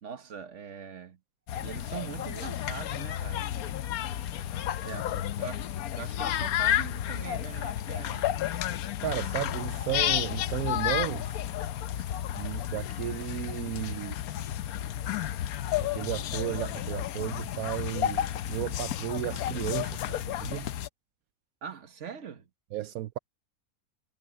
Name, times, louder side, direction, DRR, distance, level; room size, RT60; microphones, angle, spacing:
voice 1, 0.0-1.2 1.6-3.5 4.8-8.4 11.9-12.1 15.2-15.4 21.6-22.5, right 7 dB, 55° right, 1.6 m, -42 dB
sound 1, 1.5-20.9, left 11 dB, 90° left, 1.2 m, -32 dB
voice 2, 9.0-11.4 12.3-14.2 15.8-20.7 22.7-23.2, right 14 dB, 80° right, 1.1 m, -34 dB
omnidirectional pair, 1.5 m